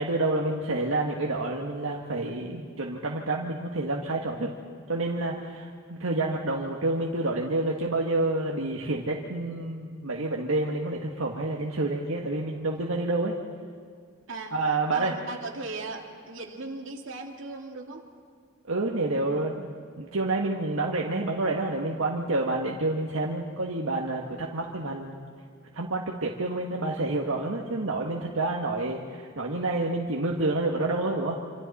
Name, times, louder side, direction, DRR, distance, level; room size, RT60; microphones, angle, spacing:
voice 1, 0.0-4.5 4.9-13.3 14.5-15.1 18.7-19.7 20.0-25.2 25.7-31.4, right 2 dB, 85° right, -1 dB, 1.5 m, -28 dB
voice 2, 14.9-18.0, right 3 dB, 65° right, 1 dB, 2.4 m, -37 dB
27.0 x 26.0 x 4.2 m, 2.1 s
head